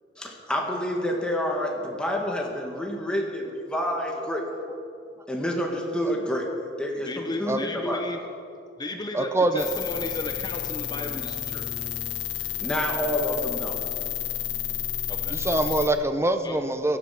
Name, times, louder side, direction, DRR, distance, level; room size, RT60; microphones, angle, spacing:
voice 1, 0.2-4.4 5.3-6.5 6.8-8.0 12.6-13.8, equal, 5° left, 0 dB, 2.1 m, -28 dB
voice 2, 7.0-8.2 8.8-11.9 15.1-15.8 16.4-16.6, left 1 dB, 25° left, 4 dB, 0.9 m, -35 dB
voice 3, 9.1-9.7 15.3-17.0, right 2 dB, 15° right, 8 dB, 0.8 m, -24 dB
sound 1, 9.6-15.9, left 10 dB, 65° left, 1.4 m, -31 dB
16.5 x 12.5 x 6.0 m, 2.4 s
head